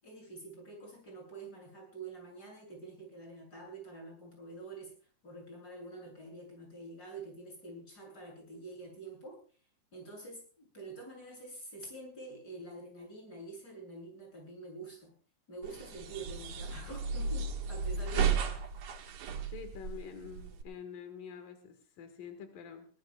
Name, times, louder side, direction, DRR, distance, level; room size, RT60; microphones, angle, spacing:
voice 1, 0.0-4.9 5.2-9.4 9.9-15.1 15.5-18.5, right 2 dB, 30° left, 0 dB, 8.3 m, -47 dB
sound 1, 15.6-20.6, right 6 dB, 85° right, 3.3 m, -34 dB
voice 2, 19.5-22.9, left 7 dB, 85° left, 7 dB, 3.4 m, -46 dB
23.0 x 18.5 x 2.3 m, 0.40 s
omnidirectional pair, 3.7 m